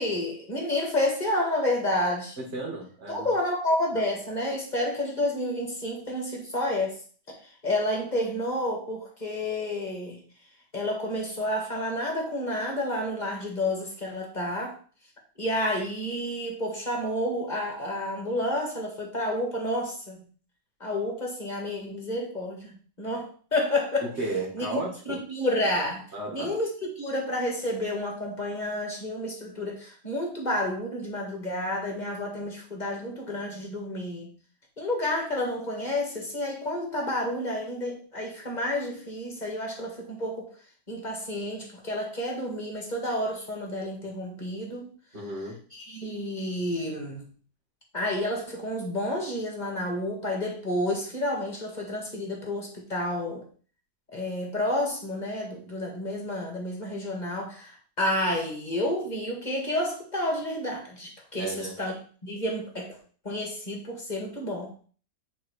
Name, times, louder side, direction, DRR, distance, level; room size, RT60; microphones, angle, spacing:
voice 1, 0.0-2.4 3.1-7.0 7.6-10.2 10.7-14.8 15.4-20.2 20.8-22.7 23.0-24.1 24.5-34.3 34.8-40.5 40.9-44.9 45.7-47.2 47.9-53.4 54.1-63.0 63.2-64.7, left 1 dB, 25° left, 0 dB, 2.0 m, -30 dB
voice 2, 2.4-3.3 24.0-25.2 26.1-26.6 45.1-45.6 61.3-61.8, right 2 dB, 40° right, -4 dB, 1.9 m, -34 dB
9.1 x 3.7 x 4.7 m, 0.42 s
omnidirectional pair, 1.8 m